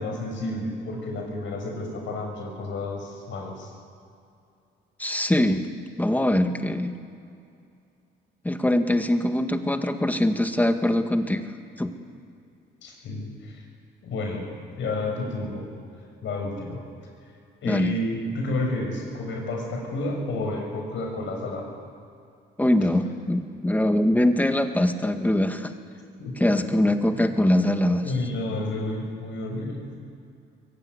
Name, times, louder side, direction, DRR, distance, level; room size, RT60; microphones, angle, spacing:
voice 1, 0.0-3.7 12.8-13.6 14.0-14.5 14.8-15.6 16.2-16.8 17.6-21.7 26.2-26.4 27.0-27.1 27.7-30.0, left 2 dB, 75° left, 2 dB, 6.5 m, -31 dB
voice 2, 5.0-5.7 6.0-6.9 8.4-11.5 11.8-11.9 17.6-18.0 22.6-25.7 26.4-28.0, left 1 dB, 10° left, 7 dB, 1.8 m, -22 dB
23.0 x 16.0 x 9.7 m, 2.5 s
cardioid pair, 90°, 20 cm